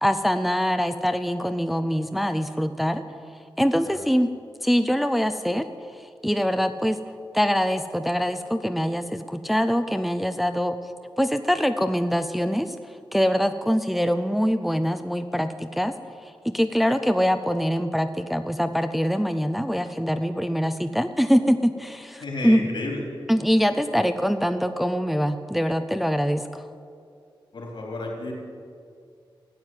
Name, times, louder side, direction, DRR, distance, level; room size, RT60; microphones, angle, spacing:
voice 1, 0.0-3.0 3.6-4.3 4.6-5.7 5.9-7.0 7.3-10.8 11.2-15.9 16.2-22.7 23.3-26.6, equal, ahead, 8 dB, 0.5 m, -24 dB
voice 2, 22.2-23.1 27.5-28.3, left 2 dB, 70° left, -1 dB, 3.5 m, -32 dB
14.0 x 9.5 x 9.0 m, 2.3 s
wide cardioid pair, 170°, 9 cm